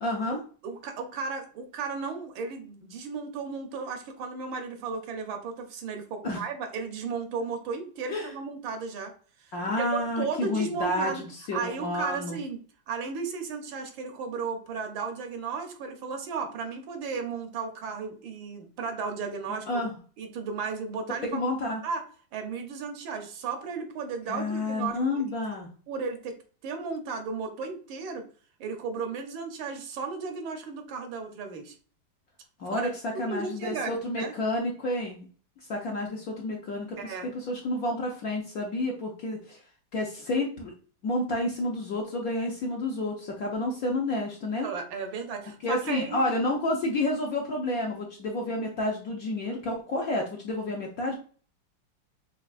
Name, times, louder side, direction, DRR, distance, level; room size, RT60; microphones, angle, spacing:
voice 1, 0.0-0.4 6.2-6.4 8.1-8.3 9.5-12.4 19.7-19.9 21.3-21.8 24.3-25.7 32.6-32.9 33.2-35.2 35.7-39.6 39.9-40.7 41.0-44.7 45.6-51.1, left 2 dB, 65° left, 0 dB, 0.9 m, -30 dB
voice 2, 0.6-9.1 9.4-11.2 11.5-12.6 12.9-19.8 20.2-21.4 21.8-22.0 22.3-25.2 25.9-28.2 28.6-31.7 32.7-32.9 33.3-33.9 34.2-34.3 37.0-37.3 44.6-46.2, right 5 dB, 80° right, 5 dB, 1.5 m, -34 dB
5.8 x 2.4 x 2.4 m, 0.42 s
omnidirectional pair, 2.1 m